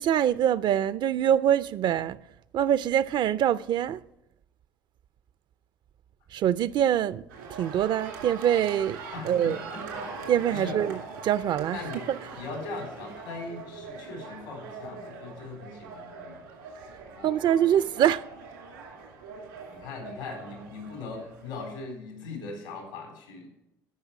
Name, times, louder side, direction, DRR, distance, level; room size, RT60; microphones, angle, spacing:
voice 1, 0.0-2.2 2.5-4.0 6.3-7.2 7.6-9.6 10.3-11.0 11.2-11.8 17.2-18.2, right 10 dB, 50° right, 0.4 m, -24 dB
sound 1, 7.3-21.7, right 4 dB, 85° right, 2.2 m, -42 dB
voice 2, 9.1-10.2 10.5-10.8 11.7-12.0 12.4-16.4 17.0-17.9 19.7-23.5, left 3 dB, 85° left, 3.8 m, -40 dB
14.0 x 5.7 x 5.9 m
hypercardioid pair, 60°, 10 cm